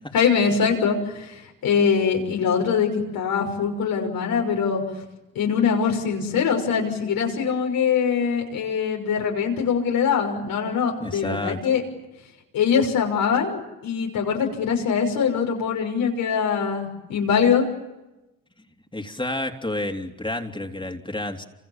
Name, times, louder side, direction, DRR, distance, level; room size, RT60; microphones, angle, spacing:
voice 1, 0.1-4.8 5.3-11.8 12.5-17.7, left 6 dB, 85° left, 1 dB, 6.1 m, -23 dB
voice 2, 11.0-11.6 18.9-21.4, left 1 dB, 15° left, 3 dB, 3.5 m, -30 dB
29.0 x 27.0 x 7.4 m, 0.99 s
supercardioid pair, 50°, 34 cm